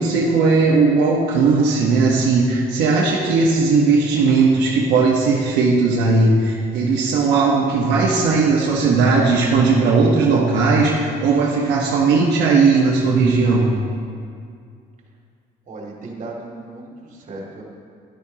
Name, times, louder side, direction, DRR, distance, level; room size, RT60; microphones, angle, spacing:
voice 1, 0.0-13.7, right 4 dB, 80° right, -4 dB, 1.2 m, -17 dB
voice 2, 15.7-17.6, right 2 dB, 45° right, -2 dB, 2.4 m, -36 dB
12.0 x 11.5 x 2.9 m, 2.3 s
cardioid pair, 110°, 17 cm